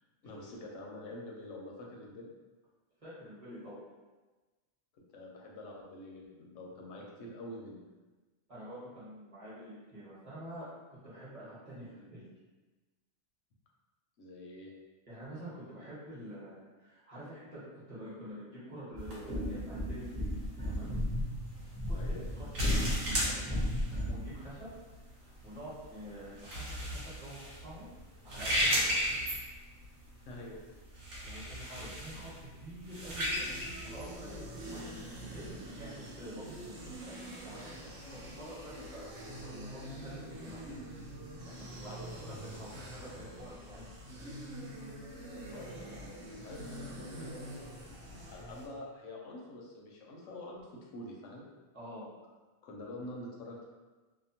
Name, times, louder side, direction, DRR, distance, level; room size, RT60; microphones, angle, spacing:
voice 1, 0.2-2.3 4.9-7.8 14.2-14.7 21.9-22.3 30.3-30.6 41.8-42.3 45.1-51.4 52.6-53.6, left 1 dB, 75° left, -1 dB, 0.9 m, -47 dB
voice 2, 3.0-3.8 8.5-10.7 11.0-12.2 15.1-20.3 20.6-20.9 21.8-24.7 25.2-27.9 28.2-29.0 31.2-32.3 32.6-33.5 33.8-40.9 41.4-42.0 42.2-43.9 51.7-52.1, equal, 30° right, -10 dB, 1.1 m, -47 dB
sound 1, 18.9-24.3, equal, 10° left, 0.4 m, -35 dB
sound 2, 19.0-35.2, equal, 90° right, 1.2 m, -37 dB
sound 3, 32.9-48.7, right 1 dB, 70° right, 1.0 m, -45 dB
2.7 x 2.1 x 2.7 m, 1.2 s
omnidirectional pair, 1.4 m